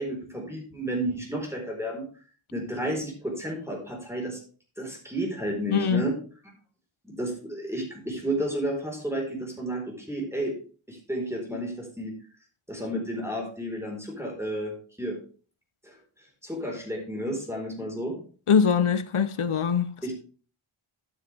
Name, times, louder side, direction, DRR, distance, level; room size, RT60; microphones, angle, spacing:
voice 1, 0.0-2.1 2.5-4.4 4.8-6.1 7.0-10.5 10.9-12.2 12.7-15.2 15.8-16.0 16.4-18.2 20.0-20.1, right 1 dB, 5° right, 4.4 m, -32 dB
voice 2, 5.7-6.1 18.5-19.9, left 6 dB, 80° left, 0.9 m, -22 dB
12.0 x 7.4 x 3.4 m
wide cardioid pair, 65°, 50 cm